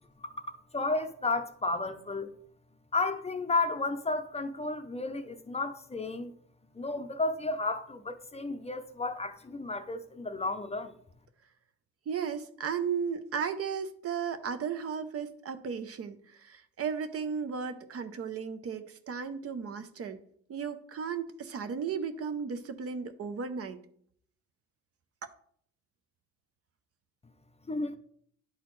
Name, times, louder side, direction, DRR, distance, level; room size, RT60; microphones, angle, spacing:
voice 1, 0.2-2.3 2.9-6.3 6.7-10.9 27.7-28.0, left 3 dB, 20° left, 0.5 m, -32 dB
voice 2, 12.1-20.2 20.5-23.8, right 6 dB, 50° right, 0.7 m, -35 dB
10.0 x 4.0 x 3.1 m
cardioid pair, 90°, 30 cm